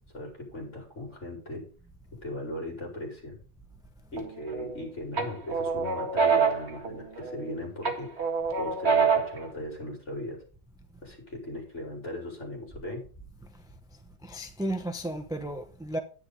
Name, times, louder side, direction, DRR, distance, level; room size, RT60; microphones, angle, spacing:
voice 1, 0.1-1.7 2.2-3.4 4.1-8.3 8.6-10.4 11.0-13.0, left 1 dB, 35° left, 5.4 m, -38 dB
sound 1, 4.2-4.8 5.2-7.5 7.8-9.5, right 5 dB, 35° right, 1.9 m, -26 dB
voice 2, 14.2-16.0, right 1 dB, 5° right, 0.5 m, -33 dB
10.5 x 10.0 x 4.0 m
omnidirectional pair, 2.0 m